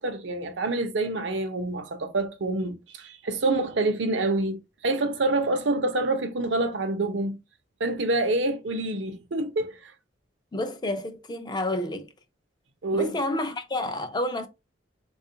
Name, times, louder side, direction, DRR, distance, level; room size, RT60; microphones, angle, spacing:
voice 1, 0.0-4.6 4.8-7.4 7.8-9.9 12.8-13.1, right 2 dB, 75° right, 0.6 m, -27 dB
voice 2, 10.5-12.1 12.9-14.5, left 1 dB, 25° left, 0.4 m, -29 dB
3.6 x 2.3 x 2.7 m
head